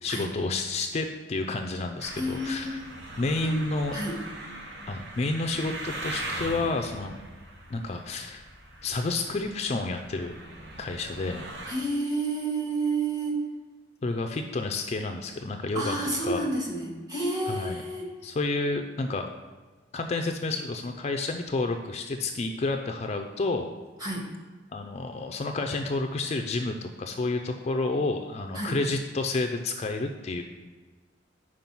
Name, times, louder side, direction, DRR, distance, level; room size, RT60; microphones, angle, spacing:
voice 1, 0.0-2.8 3.2-4.0 4.9-7.2 7.7-8.4 8.8-10.3 10.8-11.4 14.0-16.0 16.2-16.4 17.5-17.8 18.2-19.3 19.9-23.7 24.7-30.4, left 3 dB, 35° left, 5 dB, 0.4 m, -30 dB
sound 1, 2.0-11.7, right 1 dB, 65° right, 1.0 m, -40 dB
voice 2, 2.1-2.8 3.4-3.5 3.9-4.2 11.6-13.4 15.7-18.1 24.0-24.3 28.5-28.8, right 2 dB, 20° right, -2 dB, 1.5 m, -30 dB
5.4 x 4.9 x 5.9 m, 1.3 s
head